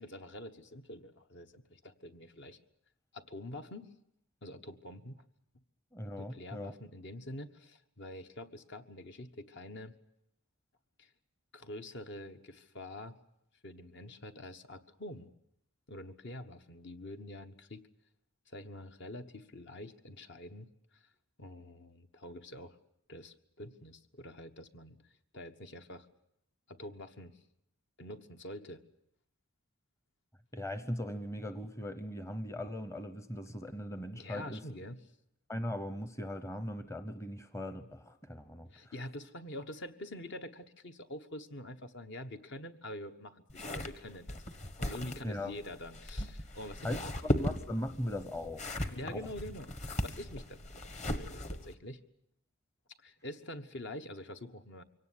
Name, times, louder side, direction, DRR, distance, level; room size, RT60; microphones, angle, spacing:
voice 1, 0.0-2.6 3.1-3.9 4.4-5.2 6.2-10.0 11.0-11.1 11.5-13.2 13.6-15.3 15.9-17.9 18.5-21.1 21.4-22.8 23.1-26.1 26.7-27.4 28.0-28.8 34.1-35.0 38.7-44.5 44.8-47.0 48.9-52.0 53.0-54.8, left 1 dB, 55° left, 7 dB, 1.3 m, -46 dB
voice 2, 5.9-6.7 30.5-34.6 35.5-38.7 45.2-45.5 46.8-48.7 49.0-49.3, left 1 dB, 15° left, 10 dB, 0.9 m, -39 dB
sound 1, 43.5-51.7, equal, 30° left, 1.4 m, -37 dB
24.0 x 18.0 x 9.7 m, 0.80 s
head